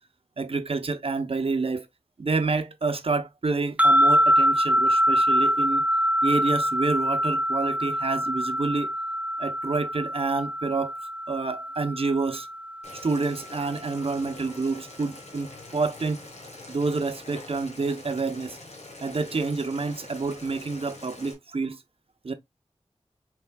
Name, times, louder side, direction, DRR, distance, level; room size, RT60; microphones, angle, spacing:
voice 1, 0.4-1.9 2.2-5.8 6.2-8.9 9.4-10.9 11.3-12.5 13.0-16.2 16.7-18.6 19.0-21.8 22.2-22.3, right 3 dB, 60° right, 0.6 m, -28 dB
sound 1, 3.8-13.1, equal, 10° right, 0.3 m, -24 dB
Boiling, 12.8-21.3, left 2 dB, 85° left, 1.2 m, -44 dB
5.7 x 3.4 x 2.2 m
wide cardioid pair, 45°, 11 cm